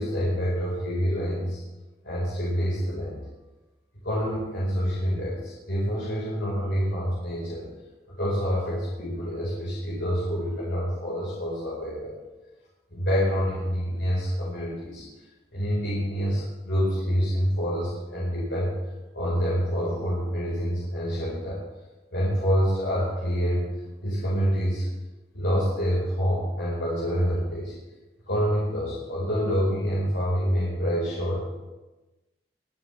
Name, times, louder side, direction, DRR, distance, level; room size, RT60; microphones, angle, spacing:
voice 1, 0.0-1.6 2.0-3.2 4.0-7.7 8.1-12.1 12.9-15.0 15.5-18.7 19.1-21.6 22.1-23.7 24.0-24.9 25.3-27.7 28.3-31.4, equal, 80° left, -6 dB, 4.6 m, -27 dB
22.0 x 11.5 x 3.4 m, 1.1 s
head